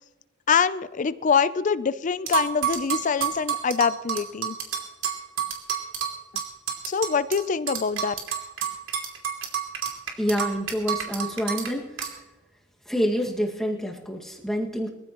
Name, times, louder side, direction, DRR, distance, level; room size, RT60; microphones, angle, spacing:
voice 1, 0.5-4.6 6.9-8.1, left 6 dB, 40° left, 15 dB, 0.4 m, -24 dB
sound 1, 2.3-7.4 7.7-11.7 12.0-12.1, right 9 dB, 90° right, 2.8 m, -29 dB
voice 2, 10.2-11.9 12.9-14.9, equal, ahead, -1 dB, 1.9 m, -27 dB
22.0 x 15.0 x 3.0 m, 1.1 s
head